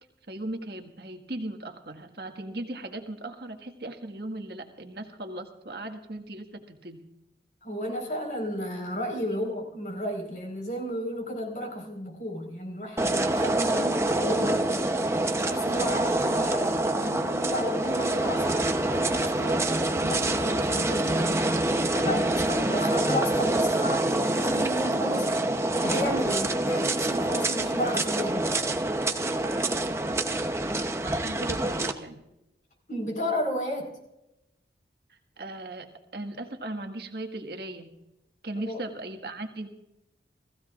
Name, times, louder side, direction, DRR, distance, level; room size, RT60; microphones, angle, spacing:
voice 1, 0.3-7.0 13.7-13.8 29.2-30.1 31.0-32.2 35.1-35.9 36.1-37.9 38.4-39.7, right 1 dB, 65° right, 4 dB, 1.7 m, -38 dB
voice 2, 7.6-14.6 15.4-21.4 21.9-25.3 25.8-28.5 32.9-33.9 38.7-38.8, equal, 45° left, 1 dB, 4.4 m, -33 dB
sound 1, 13.0-31.9, right 1 dB, 15° right, 0.8 m, -26 dB
30.0 x 15.5 x 2.5 m, 0.90 s
head